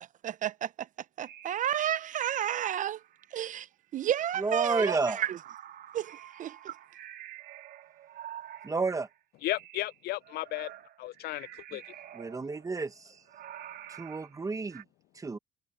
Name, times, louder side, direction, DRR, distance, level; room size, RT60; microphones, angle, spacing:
voice 1, 0.2-0.9 1.2-3.0 3.3-3.7 3.9-5.4 5.9-6.7, right 11 dB, 50° right, 0.6 m, -31 dB
sound 1, 1.2-3.5 3.9-9.2 9.4-14.8, right 11 dB, 65° right, 2.7 m, -49 dB
voice 2, 4.4-5.2 8.6-9.1 11.7-11.8 12.1-13.2 13.9-14.8 15.1-15.4, right 4 dB, 20° right, 1.2 m, -31 dB
voice 3, 9.4-10.7 11.0-11.8, left 17 dB, 70° left, 0.4 m, -34 dB
cardioid pair, 110°, 17 cm